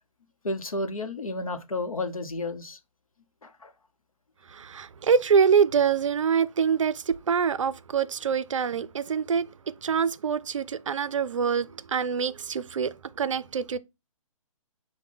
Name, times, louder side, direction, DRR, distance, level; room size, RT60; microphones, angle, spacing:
voice 1, 0.4-2.8 3.4-3.7, left 2 dB, 80° left, 0.7 m, -32 dB
voice 2, 4.5-13.8, right 6 dB, 65° right, 0.4 m, -25 dB
5.8 x 2.1 x 3.5 m
figure-of-eight pair, 130°, 18 cm